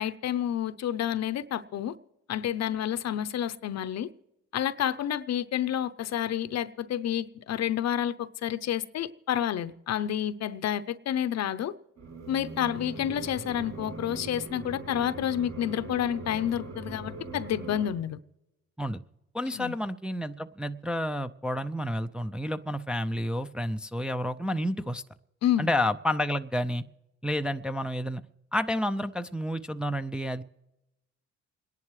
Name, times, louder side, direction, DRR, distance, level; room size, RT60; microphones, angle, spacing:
voice 1, 0.0-2.0 2.3-4.1 4.5-11.7 12.3-18.2 19.5-19.8 25.4-25.7, left 10 dB, 60° left, 0.7 m, -29 dB
sound 1, 12.0-17.9, right 3 dB, 65° right, 3.7 m, -41 dB
voice 2, 19.3-25.0 25.6-26.8 27.2-28.2 28.5-30.4, left 1 dB, 5° right, 0.4 m, -30 dB
28.5 x 10.5 x 3.2 m
cardioid pair, 90°, 30 cm